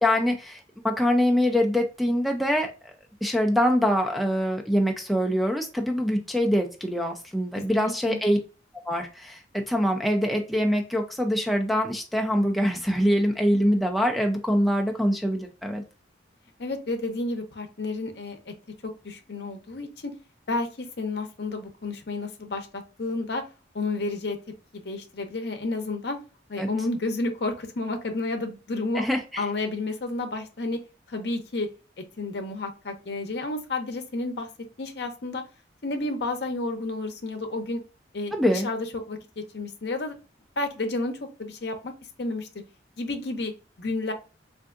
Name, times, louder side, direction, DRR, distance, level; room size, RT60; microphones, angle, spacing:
voice 1, 0.0-2.7 3.2-8.4 8.9-15.8 26.6-26.7 28.9-29.5 38.3-38.7, equal, ahead, 1 dB, 0.3 m, -24 dB
voice 2, 7.8-8.2 16.6-18.5 18.8-20.1 20.5-23.4 23.7-24.4 24.8-26.2 26.5-29.0 29.4-30.8 31.1-31.7 32.2-34.5 34.8-35.4 35.8-37.8 38.1-40.1 40.6-41.9 42.2-42.5 43.0-43.5 43.8-44.1, left 2 dB, 65° left, 5 dB, 0.7 m, -31 dB
3.5 x 2.6 x 2.4 m, 0.32 s
head